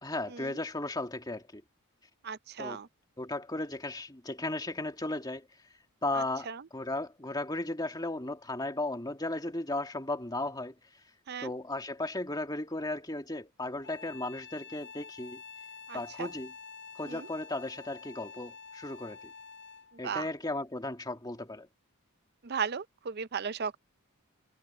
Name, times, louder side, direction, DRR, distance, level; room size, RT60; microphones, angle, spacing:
voice 1, 0.0-1.6 2.6-2.8 3.2-5.5 6.0-6.5 6.7-10.7 11.4-15.4 15.9-16.5 16.9-19.3 20.0-21.7, left 2 dB, 20° left, 2.2 m, -35 dB
voice 2, 2.2-2.9 6.1-6.6 11.3-11.5 15.9-16.3 17.0-17.3 20.0-20.3 22.4-23.8, right 6 dB, 45° right, 0.5 m, -36 dB
sound 1, 13.8-20.0, left 5 dB, 55° left, 4.9 m, -48 dB
head